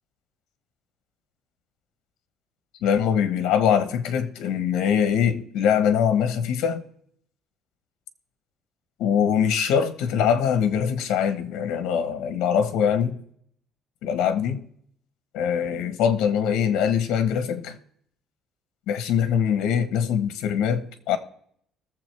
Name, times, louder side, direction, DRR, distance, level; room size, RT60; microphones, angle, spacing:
voice 1, 2.8-6.8 9.0-13.2 14.0-14.6 15.3-17.8 18.9-21.2, left 8 dB, 80° left, 1.3 m, -23 dB
20.5 x 7.3 x 3.4 m
cardioid pair, 145°, 0 cm